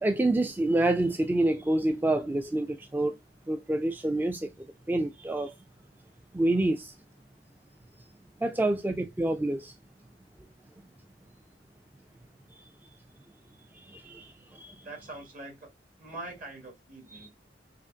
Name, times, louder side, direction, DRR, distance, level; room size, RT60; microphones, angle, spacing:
voice 1, 0.0-3.2 3.5-4.5 4.9-5.5 6.3-6.9 8.4-9.7 13.7-14.7 17.1-17.3, right 1 dB, 10° right, 0.3 m, -27 dB
voice 2, 14.8-15.7 16.0-17.3, right 2 dB, 50° right, 1.5 m, -43 dB
5.1 x 2.4 x 2.5 m
head